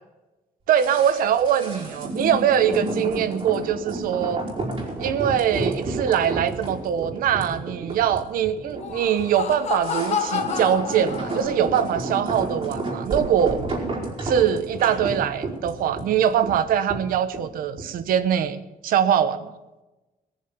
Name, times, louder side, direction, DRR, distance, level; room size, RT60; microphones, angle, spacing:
sound 1, 0.7-18.0 18.3-18.4, right 2 dB, 40° right, 4.4 m, -31 dB
voice 1, 0.7-4.4 5.0-13.6 14.2-19.6, right 9 dB, 80° right, 12 dB, 1.1 m, -22 dB
Laughter, 8.6-11.8, left 7 dB, 50° left, 1.3 m, -30 dB
18.5 x 7.4 x 7.3 m, 1.1 s
cardioid pair, 165°, 14 cm